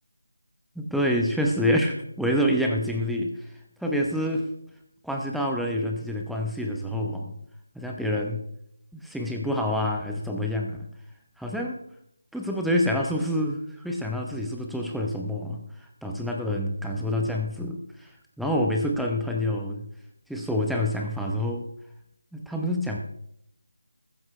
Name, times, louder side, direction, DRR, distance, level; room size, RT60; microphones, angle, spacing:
voice 1, 0.8-3.3 3.8-4.5 5.0-7.3 7.7-8.4 8.9-10.8 11.4-11.8 12.3-15.6 16.0-18.1 18.4-19.9 20.3-21.7 22.3-23.0, left 1 dB, ahead, 0 dB, 0.9 m, -27 dB
14.5 x 14.0 x 3.3 m, 0.74 s
figure-of-eight pair, 170°, 0 cm